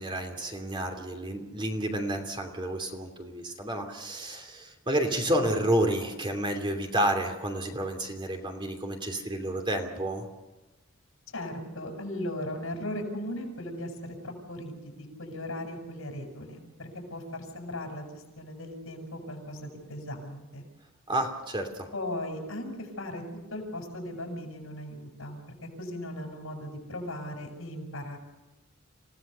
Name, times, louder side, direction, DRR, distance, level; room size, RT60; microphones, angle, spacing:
voice 1, 0.0-10.3 21.1-21.9, right 1 dB, 25° right, 4 dB, 2.9 m, -30 dB
voice 2, 11.3-20.7 21.9-23.2 23.5-28.2, left 1 dB, 75° left, 3 dB, 7.2 m, -38 dB
28.0 x 17.0 x 6.9 m, 1.1 s
head